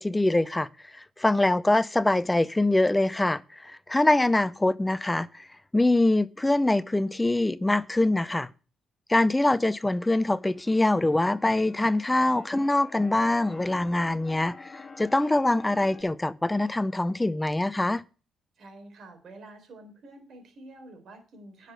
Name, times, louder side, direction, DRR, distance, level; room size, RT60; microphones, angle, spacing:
voice 1, 0.0-5.5 5.7-8.5 9.1-18.0, left 2 dB, 15° left, 0.6 m, -24 dB
Keyboard (musical), 10.2-16.0, left 4 dB, 30° left, 2.2 m, -48 dB
voice 2, 18.6-21.7, right 2 dB, 60° right, 4.0 m, -48 dB
10.5 x 6.7 x 6.4 m
cardioid pair, 90°, 0 cm